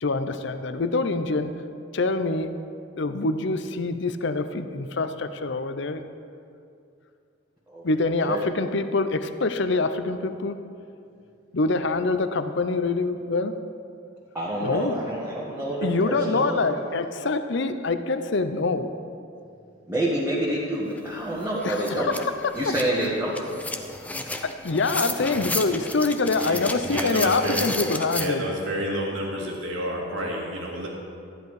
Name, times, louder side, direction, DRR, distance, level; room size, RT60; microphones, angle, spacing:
voice 1, 0.0-1.5 1.9-2.5 3.0-6.0 7.8-10.6 11.5-13.6 14.6-15.1 15.8-18.9 21.6-22.7 23.0-23.1 24.4-28.5, left 3 dB, 60° left, 10 dB, 0.6 m, -25 dB
voice 2, 14.3-16.6 19.9-22.1 22.5-23.4, right 1 dB, 10° right, -7 dB, 1.6 m, -27 dB
sound 1, 21.0-21.1 21.4-28.3, left 2 dB, 5° left, 0.6 m, -33 dB
voice 3, 26.4-27.7 28.1-30.9, equal, 75° right, -2 dB, 2.5 m, -30 dB
14.0 x 10.5 x 4.8 m, 2.4 s
head